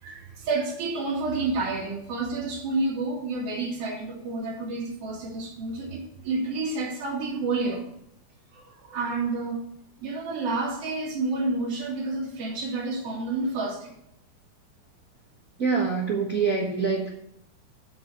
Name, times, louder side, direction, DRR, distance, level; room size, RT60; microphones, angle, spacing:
voice 1, 0.0-7.9 8.5-9.6 10.0-13.9, right 3 dB, 55° right, -3 dB, 3.3 m, -29 dB
voice 2, 15.6-17.1, right 5 dB, 40° right, -2 dB, 1.4 m, -25 dB
8.1 x 7.6 x 7.8 m, 0.73 s
omnidirectional pair, 3.3 m